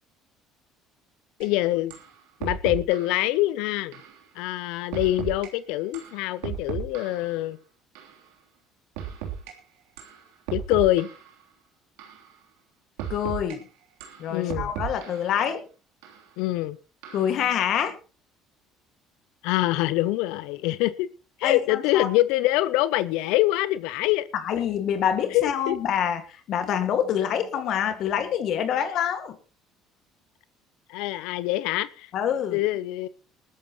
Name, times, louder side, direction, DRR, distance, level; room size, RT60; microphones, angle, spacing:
voice 1, 1.4-2.0 2.4-4.0 4.4-7.6 10.5-11.1 14.3-14.7 16.4-16.8 19.4-21.1 21.4-24.3 25.3-25.8 28.7-28.8 30.9-32.1 32.5-33.1, left 16 dB, 80° left, 0.6 m, -25 dB
sound 1, 1.4-1.5 1.9-2.1 2.4-3.2 3.9-4.1 4.9-5.5 5.9-7.3 8.0-8.1 9.0-9.5 10.0-10.2 10.5-11.3 12.0-12.2 13.0-13.6 14.0-15.3 16.0-16.2 17.0-17.4, right 9 dB, 90° right, 3.2 m, -35 dB
voice 2, 13.1-13.6 14.2-15.6 17.1-18.0 21.4-22.1 24.3-29.4 32.1-32.6, left 9 dB, 60° left, 1.9 m, -26 dB
19.5 x 13.0 x 3.0 m
supercardioid pair, 90°, 0 cm